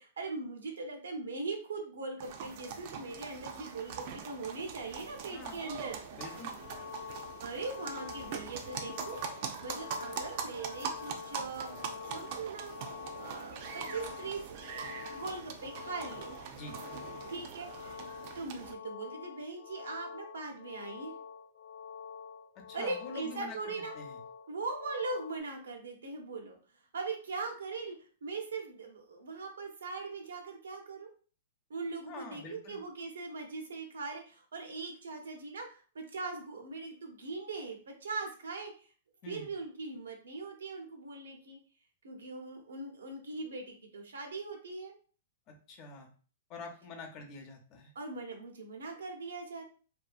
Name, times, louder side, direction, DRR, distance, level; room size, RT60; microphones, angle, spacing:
voice 1, 0.0-6.4 7.4-11.7 12.1-12.7 13.2-16.3 17.2-18.0 18.3-21.1 22.7-24.0 24.5-26.6 26.9-31.1 31.7-38.9 39.3-41.6 42.0-44.9 47.9-49.6, right 3 dB, 85° right, 2 dB, 0.8 m, -40 dB
sound 1, 2.2-18.7, right 6 dB, 50° right, 0.4 m, -42 dB
voice 2, 5.3-5.7 6.1-6.6 16.5-16.8 22.6-24.2 32.1-32.8 39.2-39.5 45.5-46.1 46.5-47.9, left 3 dB, 35° left, 2 dB, 0.6 m, -46 dB
sound 2, 6.2-25.4, left 7 dB, 90° left, 0.4 m, -47 dB
2.7 x 2.4 x 2.3 m, 0.39 s
hypercardioid pair, 140°, 0 cm